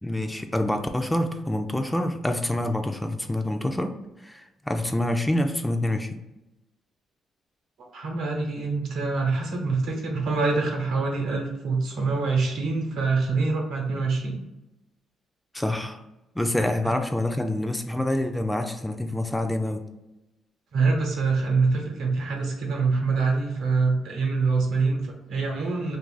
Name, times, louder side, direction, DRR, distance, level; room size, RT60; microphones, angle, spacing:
voice 1, 0.0-4.0 4.2-6.2 15.5-16.0 16.4-19.8, left 1 dB, 10° left, 6 dB, 0.3 m, -26 dB
voice 2, 7.9-14.4 20.7-26.0, right 4 dB, 80° right, 1 dB, 0.8 m, -25 dB
2.6 x 2.4 x 3.9 m, 0.97 s
cardioid pair, 90°, 0 cm